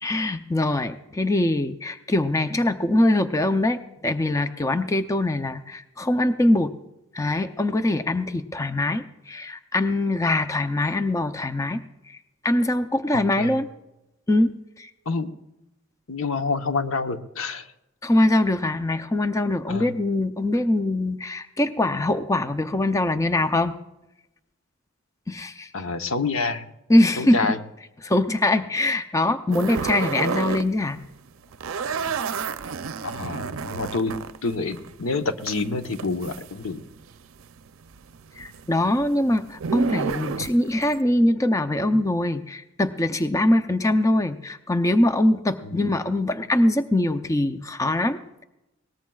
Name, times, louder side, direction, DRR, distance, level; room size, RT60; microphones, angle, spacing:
voice 1, 0.0-6.7 7.1-11.8 12.1-12.2 12.4-13.7 14.3-14.9 18.0-23.8 25.3-25.7 26.9-27.6 28.0-31.0 38.4-48.4, left 1 dB, 15° left, 9 dB, 0.6 m, -23 dB
voice 2, 16.1-17.7 19.7-19.9 25.7-26.6 27.2-27.6 33.0-34.1 34.4-36.8 45.6-45.9, left 3 dB, 80° left, 8 dB, 1.0 m, -27 dB
sound 1, 29.5-30.7 31.0-37.1 37.4-41.0, right 5 dB, 80° right, 0.5 m, -31 dB
21.5 x 18.5 x 2.4 m, 0.94 s
head